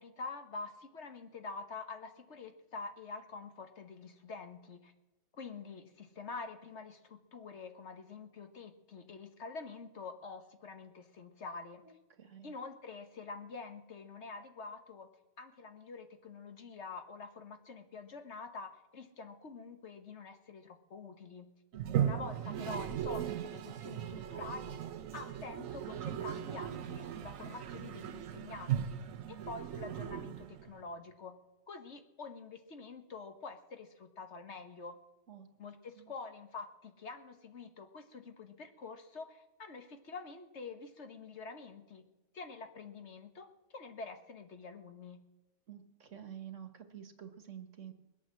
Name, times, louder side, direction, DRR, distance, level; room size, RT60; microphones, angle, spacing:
voice 1, 0.0-4.9 5.4-11.8 12.4-15.1 15.4-21.5 22.0-24.8 25.1-31.3 31.7-35.0 35.6-42.0 42.3-45.2, left 4 dB, 60° left, 7 dB, 1.5 m, -47 dB
voice 2, 12.2-12.5 21.7-22.1 35.3-35.5 36.0-36.1 45.7-47.9, right 9 dB, 70° right, 8 dB, 1.7 m, -49 dB
Toilet flush, 21.7-30.8, right 10 dB, 85° right, 1.2 m, -38 dB
21.0 x 8.5 x 7.5 m, 1.0 s
omnidirectional pair, 1.4 m